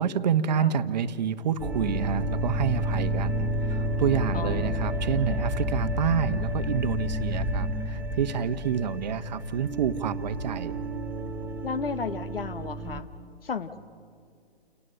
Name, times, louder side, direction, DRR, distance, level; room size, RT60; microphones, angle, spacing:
voice 1, 0.0-10.8, right 8 dB, 45° right, 11 dB, 1.1 m, -28 dB
sound 1, 1.6-13.0, equal, 5° right, 0.9 m, -30 dB
voice 2, 4.3-4.9 11.6-13.1 13.4-13.8, left 5 dB, 65° left, 12 dB, 1.5 m, -33 dB
29.5 x 18.5 x 6.7 m, 2.3 s
figure-of-eight pair, 140°, 31 cm